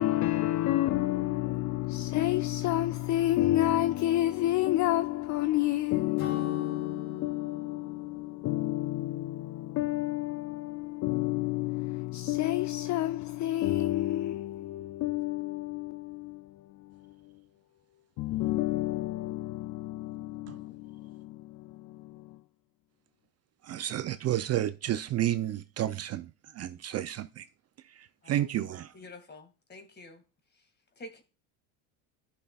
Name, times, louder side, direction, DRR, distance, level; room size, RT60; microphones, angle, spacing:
voice 1, 0.0-16.5 18.2-22.2, left 15 dB, 45° left, 0.5 m, -30 dB
Acoustic guitar / Strum, 6.2-9.8, left 7 dB, 75° left, 4.0 m, -42 dB
voice 2, 23.6-27.5 27.9-28.9, right 12 dB, 40° right, 0.5 m, -31 dB
voice 3, 28.9-30.2 30.5-30.7 31.0-31.2, left 2 dB, 25° left, 2.1 m, -48 dB
14.5 x 5.8 x 2.4 m
supercardioid pair, 100°, 42 cm